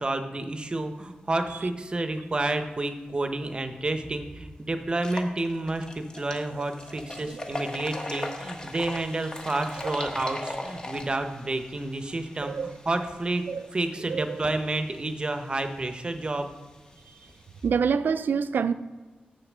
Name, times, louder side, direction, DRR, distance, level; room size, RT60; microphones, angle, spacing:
voice 1, 0.0-13.4 13.7-16.5, right 2 dB, 30° right, 7 dB, 0.7 m, -30 dB
sound 1, 3.6-3.7 4.2-4.3 4.9-17.7, left 1 dB, 25° left, 1.1 m, -40 dB
voice 2, 7.2-7.6 8.9-9.0 9.8-9.9 12.4-12.8 13.5-13.7 14.0-14.4 17.6-18.7, right 6 dB, 90° right, 13 dB, 0.4 m, -27 dB
6.7 x 5.7 x 7.3 m, 1.3 s
wide cardioid pair, 135°, 3 cm